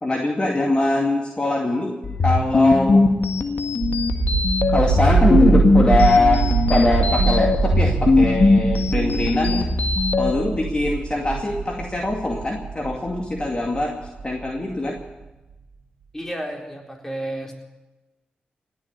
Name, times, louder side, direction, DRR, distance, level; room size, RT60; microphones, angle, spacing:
voice 1, 0.0-2.0 2.2-3.0 4.7-9.6 10.2-13.9 14.2-15.0, left 2 dB, 30° left, 0 dB, 2.4 m, -22 dB
sound 1, 2.0-10.3, left 3 dB, 55° left, 1.6 m, -20 dB
sound 2, 3.8-14.5, right 5 dB, 85° right, 2.0 m, -23 dB
voice 2, 16.1-17.5, right 1 dB, 10° left, 0 dB, 4.0 m, -31 dB
17.5 x 7.5 x 9.6 m, 1.1 s
supercardioid pair, 45°, 3 cm